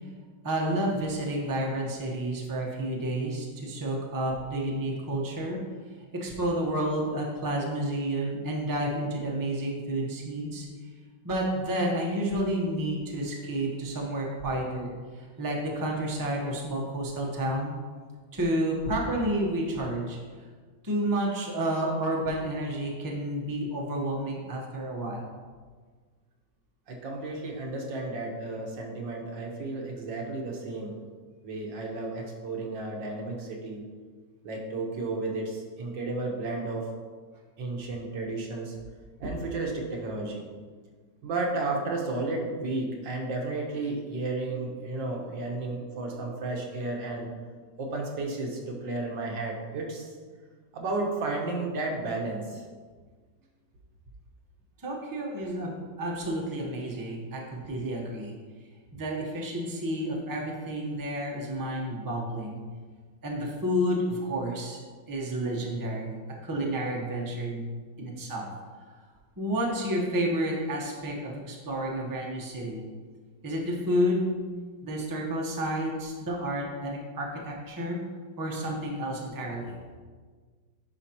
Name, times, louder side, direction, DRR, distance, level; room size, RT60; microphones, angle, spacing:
voice 1, 0.4-5.6 6.1-10.7 11.2-17.7 18.3-20.2 20.8-25.2 54.8-58.4 58.9-62.6 63.2-64.8 65.1-67.7 68.0-68.5 69.4-72.9 73.4-74.4 74.8-78.0 78.4-79.7, right 1 dB, 15° right, -2 dB, 0.7 m, -30 dB
voice 2, 26.9-31.0 31.4-33.8 34.4-36.9 37.6-38.8 39.2-40.5 41.2-47.3 47.8-50.2 50.7-52.6, right 2 dB, 85° right, 0 dB, 1.8 m, -33 dB
9.9 x 5.1 x 2.9 m, 1.5 s
omnidirectional pair, 1.9 m